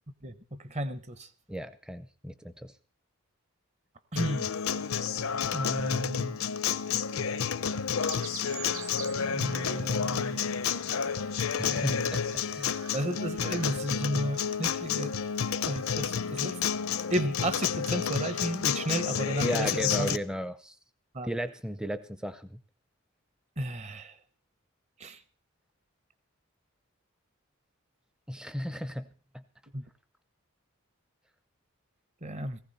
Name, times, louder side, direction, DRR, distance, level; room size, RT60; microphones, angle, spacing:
voice 1, 0.2-1.3 4.1-4.5 5.5-6.4 9.3-10.4 11.6-12.1 12.9-15.1 15.7-16.6 17.1-19.7 20.0-20.2 21.1-21.3 23.6-24.2 25.0-25.2 29.7-29.9 32.2-32.6, right 1 dB, 30° right, 12 dB, 0.9 m, -33 dB
voice 2, 1.5-2.7 11.4-12.7 19.4-20.8 21.2-22.6 28.3-29.1 29.3-29.4, equal, 5° right, 13 dB, 0.6 m, -35 dB
Acoustic guitar, 4.2-20.2, left 7 dB, 70° left, 0.7 m, -30 dB
Chirp tweet, 8.0-16.5, right 5 dB, 70° right, 1.9 m, -48 dB
18.0 x 15.5 x 4.2 m, 0.40 s
head